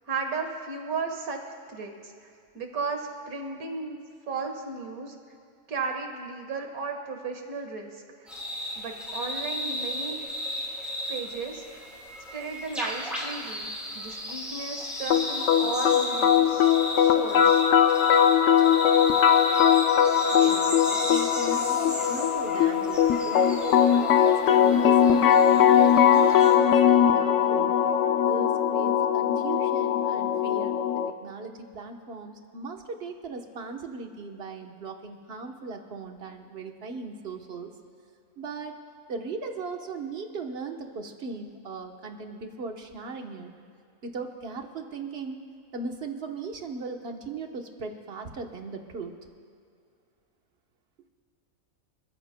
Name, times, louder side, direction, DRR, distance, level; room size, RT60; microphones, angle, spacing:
voice 1, 0.1-1.4 1.7-4.0 4.3-5.2 5.7-7.9 8.8-10.2 11.1-11.9 12.3-17.6, right 4 dB, 80° right, 4 dB, 1.9 m, -35 dB
sound 1, 8.3-26.5, equal, ahead, 3.5 m, -35 dB
sound 2, 15.1-31.1, left 9 dB, 70° left, 0.9 m, -21 dB
voice 2, 20.3-27.7 28.2-30.8 31.1-37.7 38.4-38.8 39.1-43.5 44.0-45.4 45.7-49.1, right 4 dB, 45° right, 4 dB, 1.3 m, -38 dB
26.5 x 14.5 x 2.2 m, 2.4 s
omnidirectional pair, 1.5 m